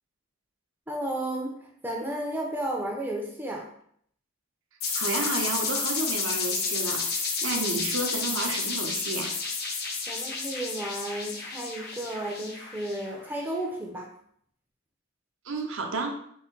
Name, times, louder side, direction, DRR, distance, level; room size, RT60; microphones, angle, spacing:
voice 1, 0.9-1.6 1.8-3.7 7.5-7.6 10.1-14.1, right 1 dB, 10° right, 0 dB, 0.5 m, -33 dB
sound 1, 4.8-13.3, left 4 dB, 45° left, 0.7 m, -31 dB
voice 2, 4.9-9.3 15.5-16.2, right 3 dB, 65° right, 3 dB, 0.7 m, -31 dB
3.8 x 2.7 x 4.4 m, 0.66 s
head